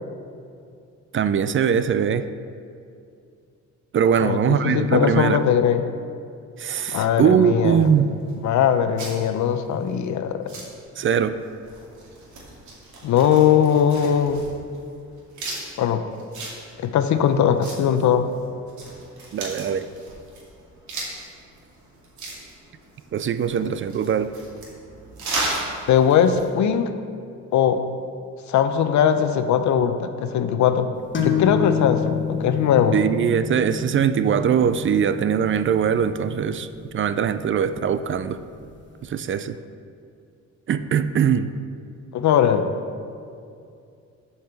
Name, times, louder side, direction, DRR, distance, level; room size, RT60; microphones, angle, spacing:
voice 1, 1.1-2.3 3.9-5.4 6.6-8.1 11.0-11.4 19.3-19.9 23.1-24.3 32.9-36.7 36.9-38.4 39.0-39.6 40.7-41.5, right 8 dB, 40° right, 12 dB, 0.4 m, -21 dB
voice 2, 4.2-5.9 6.9-7.9 8.4-10.4 13.0-14.4 15.8-16.0 16.8-18.2 25.9-26.9 27.5-27.8 28.5-30.9 31.2-33.0 42.1-42.7, left 8 dB, 70° left, 9 dB, 0.7 m, -20 dB
sound 1, 7.8-26.5, right 2 dB, 70° right, 2.5 m, -36 dB
sound 2, 31.1-38.6, left 7 dB, 40° left, 1.1 m, -29 dB
7.6 x 5.7 x 6.8 m, 2.4 s
cardioid pair, 90°, 30 cm